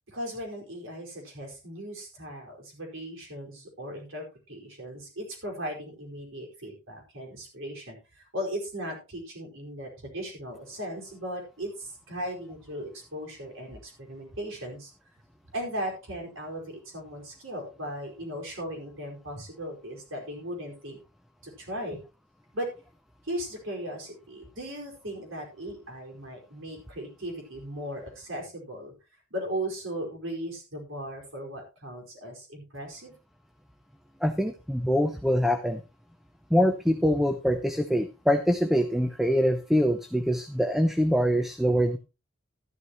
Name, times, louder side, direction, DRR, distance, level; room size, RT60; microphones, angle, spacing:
voice 1, 0.1-14.9 15.5-21.0 21.4-22.0 22.5-22.7 23.2-28.9 29.3-33.2, equal, 70° right, 1 dB, 4.8 m, -37 dB
voice 2, 34.2-35.8 36.5-42.0, equal, ahead, 8 dB, 0.6 m, -24 dB
12.5 x 12.5 x 3.0 m, 0.29 s
head